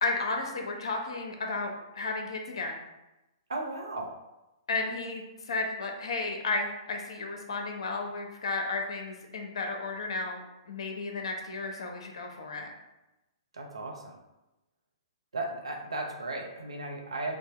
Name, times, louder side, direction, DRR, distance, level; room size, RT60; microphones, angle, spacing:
voice 1, 0.0-2.8 4.7-12.7, left 3 dB, 65° left, 2 dB, 0.7 m, -33 dB
voice 2, 3.5-4.1 13.5-14.2 15.3-17.4, right 2 dB, 75° right, 0 dB, 0.6 m, -35 dB
3.5 x 2.1 x 4.2 m, 0.98 s
figure-of-eight pair, 115°, 3 cm